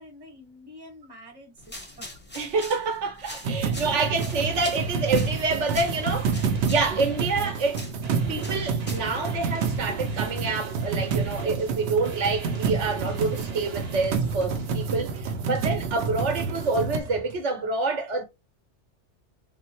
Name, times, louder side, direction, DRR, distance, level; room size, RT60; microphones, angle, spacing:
voice 1, 0.0-2.1, left 1 dB, 20° right, 1.1 m, -47 dB
sound 1, 1.6-9.2, left 1 dB, 15° left, 0.5 m, -43 dB
voice 2, 2.3-7.8 8.3-18.2, right 3 dB, 85° right, 1.2 m, -27 dB
sound 2, 3.4-17.0, right 5 dB, 70° right, 0.8 m, -29 dB
sound 3, 4.3-17.4, right 1 dB, 40° right, 0.7 m, -41 dB
3.6 x 2.1 x 2.8 m
omnidirectional pair, 1.2 m